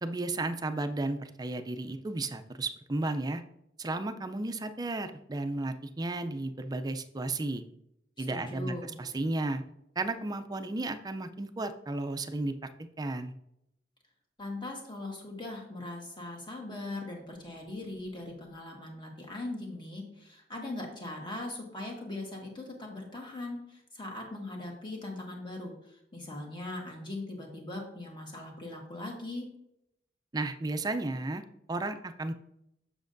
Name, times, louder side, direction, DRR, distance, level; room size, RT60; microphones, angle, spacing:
voice 1, 0.0-3.4 3.8-7.6 8.2-9.6 10.0-12.7 13.0-13.3 30.3-31.4 31.7-32.3, right 2 dB, 20° right, 8 dB, 0.4 m, -33 dB
voice 2, 8.2-9.0 14.4-29.5, left 2 dB, 25° left, 0 dB, 1.5 m, -40 dB
7.3 x 6.5 x 2.6 m, 0.79 s
head